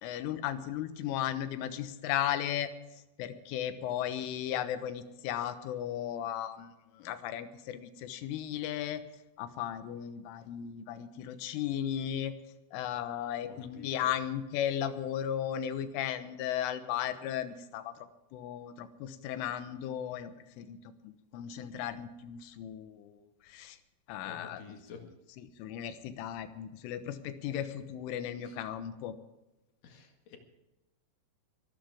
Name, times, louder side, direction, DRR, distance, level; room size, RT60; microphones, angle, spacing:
voice 1, 0.0-2.7 3.2-6.7 7.0-9.0 9.4-12.3 12.7-17.9 18.3-20.3 20.6-20.8 21.0-23.2 23.5-23.8 24.1-24.6 25.6-29.1, left 10 dB, 85° left, 10 dB, 3.6 m, -35 dB
voice 2, 13.4-14.1 24.2-25.0 28.4-28.6 29.8-30.4, left 5 dB, 55° left, 3 dB, 2.9 m, -50 dB
23.5 x 13.0 x 3.6 m, 1.0 s
omnidirectional pair, 5.5 m